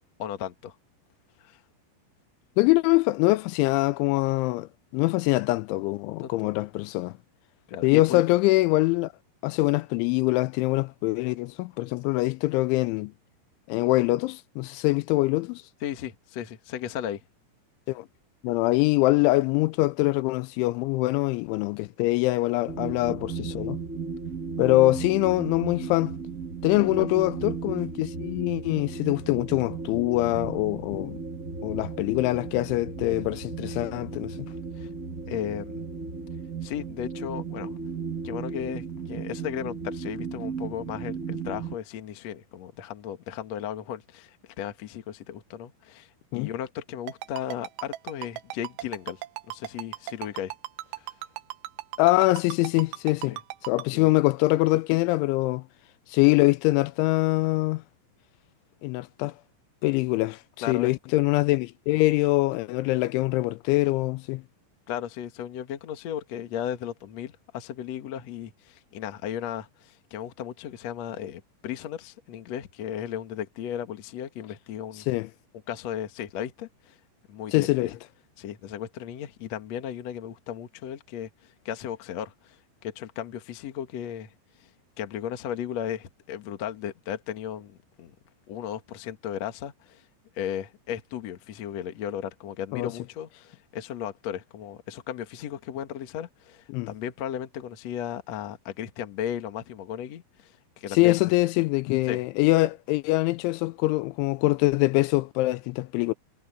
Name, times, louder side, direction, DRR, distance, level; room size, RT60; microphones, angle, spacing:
voice 1, 0.2-0.7 1.4-1.6 6.2-6.5 7.7-8.2 15.8-17.2 26.8-27.1 34.8-34.9 35.3-35.8 36.6-37.7 38.2-49.2 49.5-50.5 50.9-51.0 53.3-53.4 53.9-54.1 60.6-60.9 64.9-75.1 75.7-77.0 77.3-77.9 78.4-84.7 85.0-88.1 88.5-90.0 90.3-101.1 102.1-102.2, left 10 dB, 65° left, 1.6 m, -35 dB
voice 2, 2.6-7.2 7.8-9.1 9.4-13.1 13.7-15.6 17.9-18.1 18.4-23.8 24.6-26.2 26.6-31.2 31.6-34.4 46.3-46.5 52.0-55.6 56.1-57.8 58.8-59.3 59.8-64.4 75.0-75.3 77.5-77.9 92.7-92.9 96.7-96.9 100.9-106.1, left 20 dB, 85° left, 2.9 m, -24 dB
sound 1, 22.7-41.8, right 5 dB, 20° right, 2.1 m, -35 dB
Ringtone, 47.1-53.8, right 17 dB, 80° right, 3.0 m, -36 dB
omnidirectional pair, 5.6 m